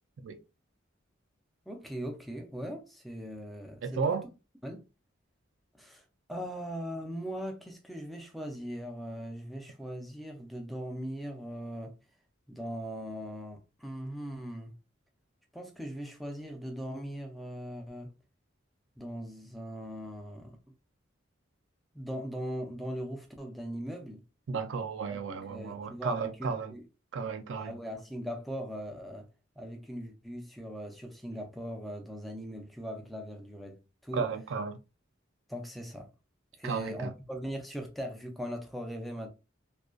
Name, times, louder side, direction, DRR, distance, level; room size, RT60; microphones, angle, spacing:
voice 1, 1.7-4.2 4.6-4.8 5.8-6.0 6.3-11.9 12.5-14.7 15.5-18.1 19.0-20.5 21.9-24.2 25.1-26.8 27.6-29.3 29.6-34.3 35.5-36.1 36.6-39.3, equal, ahead, 0.4 m, -40 dB
voice 2, 3.8-4.3 24.5-26.7 27.1-27.8 34.1-34.8 36.6-37.1, right 5 dB, 70° right, 0.4 m, -33 dB
2.5 x 2.2 x 2.2 m
head